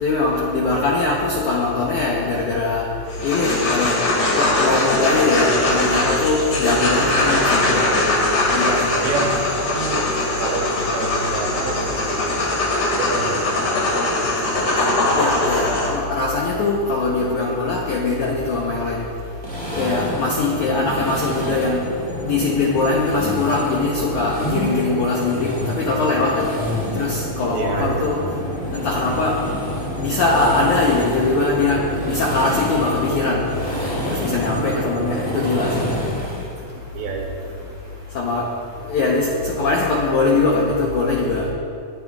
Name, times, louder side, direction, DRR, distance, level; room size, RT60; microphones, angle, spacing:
voice 1, 0.0-2.8 3.2-4.0 4.4-7.9 8.5-8.9 15.2-19.0 19.8-21.8 22.2-26.6 27.0-28.2 28.7-29.4 30.0-33.4 34.1-35.9 38.2-38.5 38.9-41.5, left 3 dB, 75° left, -3 dB, 1.8 m, -21 dB
sound 1, 3.1-15.9, left 2 dB, 55° left, 3.3 m, -21 dB
voice 2, 9.0-10.1 10.4-12.6 12.9-14.2 20.9-21.1 27.5-28.3 34.5-35.1 36.9-37.7, right 4 dB, 75° right, 1 dB, 2.3 m, -29 dB
sound 2, 19.4-36.0, equal, 25° left, 2.8 m, -30 dB
sound 3, 19.4-21.8 22.9-24.7 25.2-27.2 28.6-36.5, equal, 5° left, 1.2 m, -30 dB
20.0 x 9.5 x 2.4 m, 2.5 s
omnidirectional pair, 4.6 m